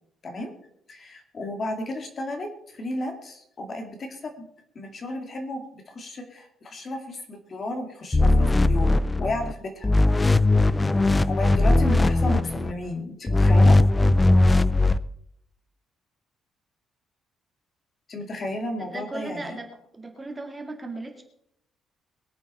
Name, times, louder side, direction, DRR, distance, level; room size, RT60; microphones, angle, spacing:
voice 1, 0.9-4.3 4.7-9.9 11.2-13.8 18.1-19.6, left 1 dB, 35° left, 4 dB, 2.3 m, -33 dB
sound 1, 8.1-9.5 9.8-12.7 13.3-15.0, left 2 dB, 15° left, 0.5 m, -19 dB
voice 2, 18.8-19.7 19.9-21.2, right 2 dB, 15° right, 3 dB, 2.3 m, -36 dB
23.0 x 8.4 x 4.3 m, 0.72 s
cardioid pair, 155°, 0 cm